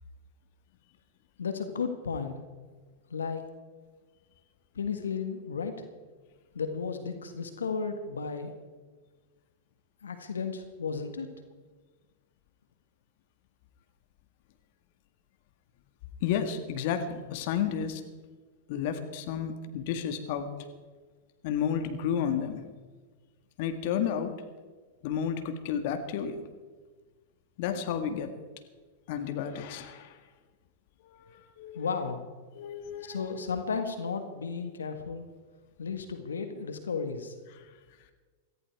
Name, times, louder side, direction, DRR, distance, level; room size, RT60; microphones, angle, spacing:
voice 1, 1.4-2.3 3.1-3.4 4.7-5.7 6.5-8.5 10.0-11.3 31.7-32.2 33.0-35.3 35.8-37.3, left 5 dB, 85° left, 7 dB, 1.7 m, -34 dB
voice 2, 16.2-18.0 18.7-20.5 21.4-22.6 23.6-24.4 25.0-26.4 27.6-28.3 29.1-30.2 31.2-31.9 32.5-33.2 37.6-37.7, left 8 dB, 55° left, 8 dB, 1.8 m, -31 dB
18.0 x 14.5 x 4.8 m, 1.4 s
hypercardioid pair, 105°, 0 cm